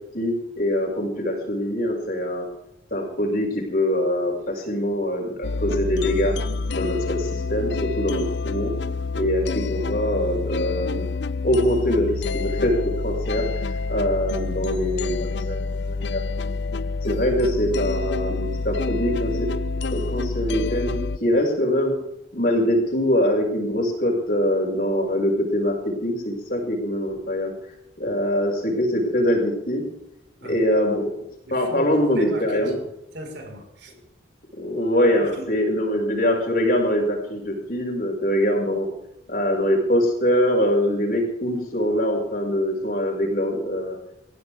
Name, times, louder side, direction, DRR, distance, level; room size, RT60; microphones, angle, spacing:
voice 1, 0.1-2.4 2.9-6.3 6.7-8.7 9.1-11.1 11.4-16.5 17.0-19.5 19.9-22.0 22.3-27.5 28.0-29.8 30.4-31.0 31.5-32.7 34.6-38.9 39.3-44.0, equal, 50° left, 0 dB, 6.4 m, -23 dB
sound 1, 5.4-21.2, left 3 dB, 70° left, 0.6 m, -27 dB
voice 2, 31.5-33.9 35.2-35.5, right 1 dB, 75° right, 2 dB, 5.4 m, -38 dB
22.0 x 16.5 x 3.7 m, 0.81 s
head